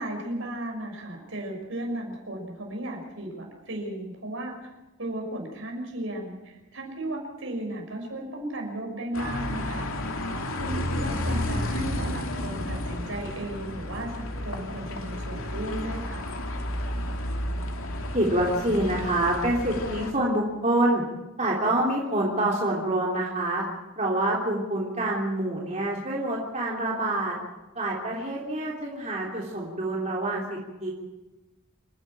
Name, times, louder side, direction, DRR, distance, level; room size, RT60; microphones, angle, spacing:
voice 1, 0.0-4.7 5.0-9.9 10.6-16.2, right 1 dB, 70° right, 1 dB, 5.9 m, -35 dB
sound 1, 9.1-20.1, left 1 dB, 80° left, 2.6 m, -32 dB
voice 2, 18.1-21.0 21.4-23.6 24.0-27.3 27.7-30.9, right 1 dB, 35° right, -3 dB, 3.4 m, -26 dB
28.0 x 11.0 x 8.8 m, 1.1 s
head